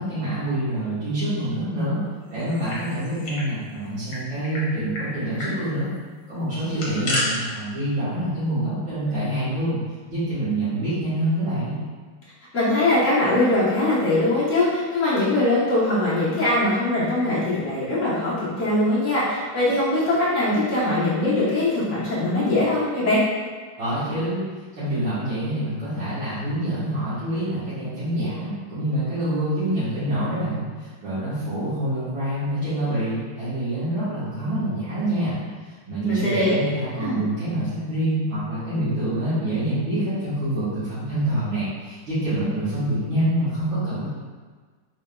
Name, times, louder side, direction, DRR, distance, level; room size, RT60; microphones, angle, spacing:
voice 1, 0.0-2.0 2.3-5.9 6.3-9.8 10.1-11.8 23.8-24.4 24.7-35.3 35.6-44.1, right 1 dB, 65° right, -16 dB, 2.1 m, -26 dB
sound 1, 2.4-3.5 3.7-3.8 4.1-4.6 4.9-5.1 5.4-5.6 6.5-7.2, left 2 dB, 65° left, 1.7 m, -30 dB
voice 2, 12.5-23.2 36.0-36.5 37.0-37.2, left 2 dB, 45° left, -9 dB, 1.1 m, -21 dB
4.5 x 3.5 x 2.2 m, 1.5 s
omnidirectional pair, 2.4 m